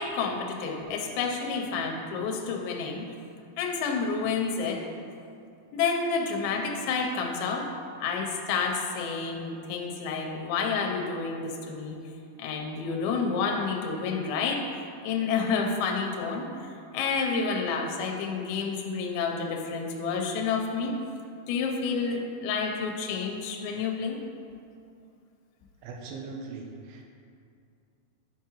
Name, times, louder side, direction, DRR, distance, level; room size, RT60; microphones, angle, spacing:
voice 1, 0.0-3.1 3.6-4.8 5.7-7.7 8.0-12.0 12.4-16.5 16.9-20.9 21.5-24.2, left 5 dB, 85° left, 1 dB, 2.5 m, -29 dB
voice 2, 25.8-27.0, right 4 dB, 80° right, 0 dB, 2.6 m, -40 dB
9.3 x 4.6 x 2.9 m, 2.4 s
omnidirectional pair, 4.3 m